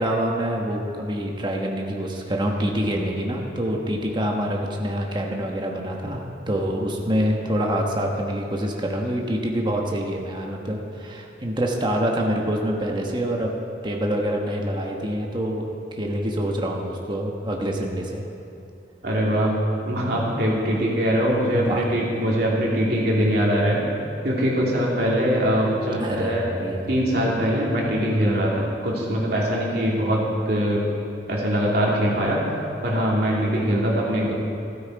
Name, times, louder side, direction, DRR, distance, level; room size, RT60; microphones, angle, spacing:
voice 1, 0.0-13.5 13.8-18.2 21.5-21.8 25.9-26.9, equal, 25° right, 0 dB, 1.2 m, -26 dB
voice 2, 19.0-19.5 19.8-23.8 24.2-26.5 26.9-30.9 31.3-32.4 32.8-34.3, equal, 60° right, -4 dB, 2.8 m, -22 dB
13.0 x 12.5 x 4.7 m, 2.6 s
head